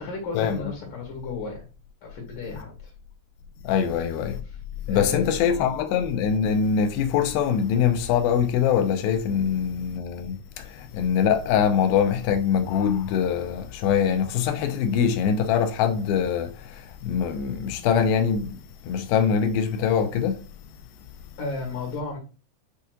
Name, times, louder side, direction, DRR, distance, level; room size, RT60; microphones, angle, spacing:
voice 1, 0.0-1.7 2.0-2.9 3.8-4.0 4.4-4.6 4.9-5.7 21.4-22.2, left 3 dB, 65° left, 2.8 m, -34 dB
voice 2, 3.6-4.4 4.9-18.5 18.9-20.4, left 7 dB, 90° left, 2.4 m, -23 dB
7.8 x 2.8 x 2.3 m
omnidirectional pair, 4.2 m